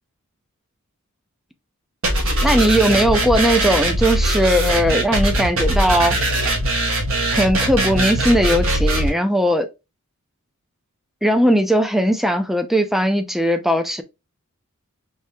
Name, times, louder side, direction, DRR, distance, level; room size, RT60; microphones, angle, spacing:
sound 1, 2.0-9.1, right 1 dB, 70° right, 1.6 m, -20 dB
voice 1, 2.4-6.2 7.3-9.7 11.2-14.0, equal, ahead, 0.5 m, -18 dB
4.7 x 3.3 x 2.8 m
head